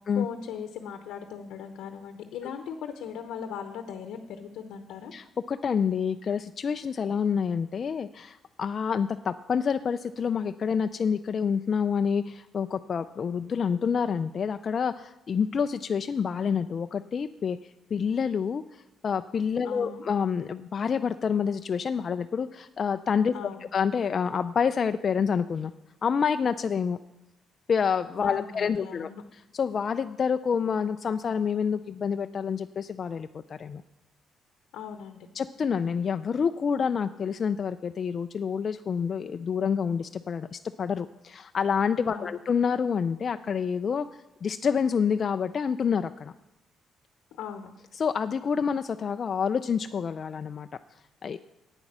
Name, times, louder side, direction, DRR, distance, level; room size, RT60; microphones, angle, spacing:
voice 1, 0.1-5.1 19.6-20.0 23.3-23.7 28.2-29.2 34.7-35.2 42.1-42.4 47.3-47.7, left 7 dB, 85° left, 7 dB, 0.8 m, -38 dB
voice 2, 5.1-17.6 17.9-23.3 23.7-25.7 26.0-27.0 27.7-29.1 29.5-33.8 35.4-44.1 44.4-46.3 47.9-50.7 51.2-51.4, left 6 dB, 50° left, 9 dB, 0.3 m, -28 dB
9.4 x 8.9 x 6.1 m, 0.97 s
cardioid pair, 90°, 0 cm